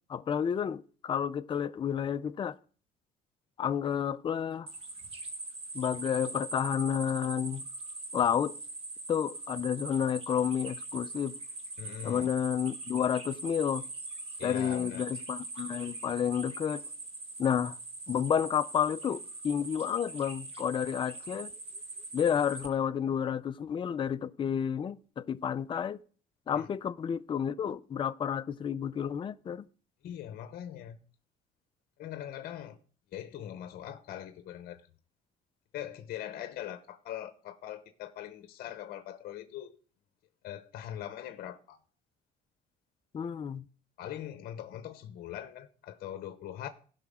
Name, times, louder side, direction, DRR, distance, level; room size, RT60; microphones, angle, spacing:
voice 1, 0.1-2.6 3.6-4.7 5.7-7.6 8.1-8.6 9.1-11.4 12.0-13.8 14.4-16.8 17.4-17.8 18.1-21.5 22.1-26.0 26.5-29.6 43.1-43.6, left 8 dB, 30° left, 0.4 m, -30 dB
sound 1, 4.7-22.7, right 2 dB, 35° right, 1.5 m, -42 dB
voice 2, 11.8-12.3 14.4-15.0 26.5-26.7 30.0-31.0 32.0-32.8 33.1-34.8 35.7-39.8 40.4-41.8 44.0-46.7, left 11 dB, 65° left, 0.8 m, -41 dB
16.5 x 5.7 x 3.6 m
cardioid pair, 110°, 17 cm